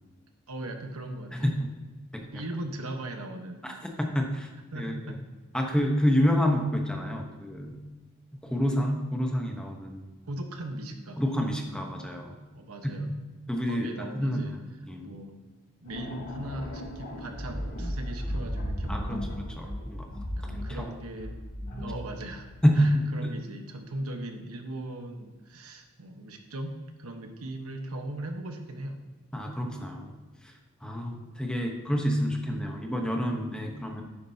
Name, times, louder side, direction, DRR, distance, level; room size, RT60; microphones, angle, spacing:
voice 1, 0.5-1.5 2.2-3.6 3.9-4.0 4.7-5.2 5.5-5.7 10.3-11.2 12.5-13.1 13.7-14.5 15.0-15.4 15.8-19.3 19.6-19.7 20.4-21.4 21.8-22.5 22.8-29.0 30.8-31.0, right 1 dB, 90° right, 5 dB, 1.2 m, -39 dB
voice 2, 1.3-1.7 2.3-2.4 3.6-3.7 4.1-4.5 4.7-5.2 5.5-7.8 8.3-10.0 11.2-12.3 12.8-13.1 13.5-14.6 14.9-15.1 18.9-20.1 20.5-21.0 22.6-23.3 29.3-30.2 30.4-30.5 30.8-34.0, equal, 5° left, 2 dB, 1.0 m, -28 dB
sound 1, 15.8-22.8, equal, 50° left, 2.8 m, -36 dB
11.0 x 9.7 x 2.8 m, 1.3 s
head